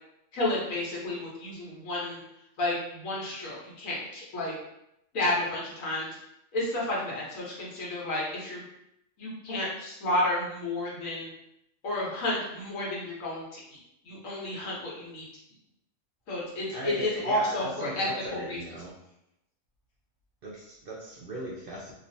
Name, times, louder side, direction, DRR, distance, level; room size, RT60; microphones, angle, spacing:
voice 1, 0.3-2.2 2.6-4.5 5.1-6.1 6.5-8.6 9.2-11.3 11.8-13.6 14.0-15.2 16.3-18.6, left 1 dB, 85° left, -4 dB, 1.3 m, -31 dB
voice 2, 16.7-18.9 20.4-21.9, right 1 dB, 60° right, -4 dB, 0.6 m, -38 dB
3.1 x 2.5 x 2.6 m, 0.80 s
omnidirectional pair, 1.3 m